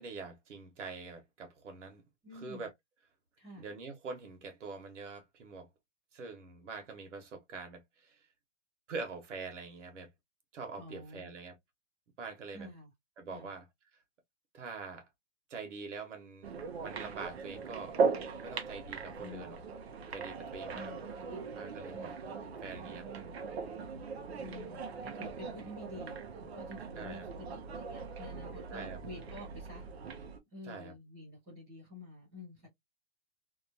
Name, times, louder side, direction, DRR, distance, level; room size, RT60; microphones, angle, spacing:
voice 1, 0.0-2.0 2.3-2.7 3.5-5.7 6.1-8.3 8.9-10.1 10.5-11.6 12.2-12.7 13.2-13.7 14.5-15.1 15.5-16.5 16.8-18.0 18.4-19.6 20.1-20.9 21.6-22.1 22.6-23.4 27.0-27.2 28.7-29.0 30.6-30.9, right 4 dB, 85° right, 1.3 m, -44 dB
voice 2, 2.2-2.7 3.4-3.7 10.7-11.3 12.5-12.9 13.3-13.5 19.2-19.6 20.7-21.5 21.9-22.1 22.4-22.5 24.4-29.9 30.5-32.7, left 2 dB, 5° right, 0.5 m, -49 dB
sound 1, 16.4-30.4, right 5 dB, 60° right, 0.7 m, -39 dB
2.9 x 2.3 x 2.6 m
hypercardioid pair, 180°, 35 cm